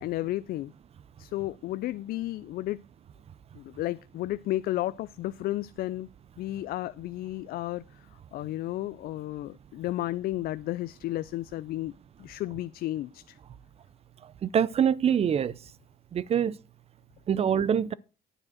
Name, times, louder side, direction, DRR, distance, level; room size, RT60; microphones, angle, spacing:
voice 1, 0.0-0.7 1.2-2.8 3.5-6.1 6.4-13.4, left 15 dB, 65° left, 0.4 m, -33 dB
voice 2, 14.4-15.5 16.1-16.6 17.3-17.9, right 8 dB, 35° right, 0.5 m, -24 dB
9.8 x 4.7 x 7.6 m
cardioid pair, 110°, 17 cm